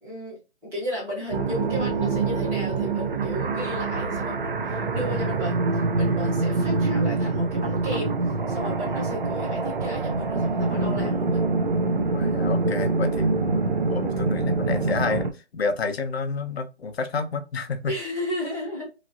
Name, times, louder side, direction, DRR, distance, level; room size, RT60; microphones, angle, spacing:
voice 1, 0.0-0.4 0.6-11.4 17.9-18.9, left 1 dB, 5° right, 0.9 m, -34 dB
sound 1, 1.3-15.3, right 3 dB, 50° right, 0.5 m, -25 dB
voice 2, 12.1-13.5 13.9-17.9, left 4 dB, 60° left, 0.7 m, -30 dB
3.1 x 2.5 x 2.4 m
hypercardioid pair, 160°, 36 cm